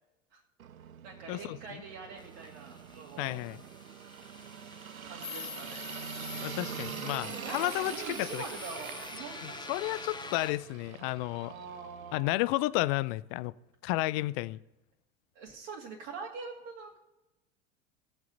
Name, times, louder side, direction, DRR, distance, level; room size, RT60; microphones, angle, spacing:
sound 1, 0.6-12.2, right 9 dB, 85° right, 0.6 m, -44 dB
voice 1, 1.0-3.4 5.1-5.8 7.4-9.6 11.4-12.4 15.3-17.0, right 5 dB, 55° right, 2.5 m, -44 dB
sound 2, 2.2-10.5, left 6 dB, 10° left, 0.8 m, -45 dB
voice 2, 3.2-3.6 6.4-8.4 9.4-11.5 12.1-13.5 13.8-14.6, left 19 dB, 45° left, 0.5 m, -32 dB
19.0 x 7.6 x 4.0 m
figure-of-eight pair, 80°, 40 cm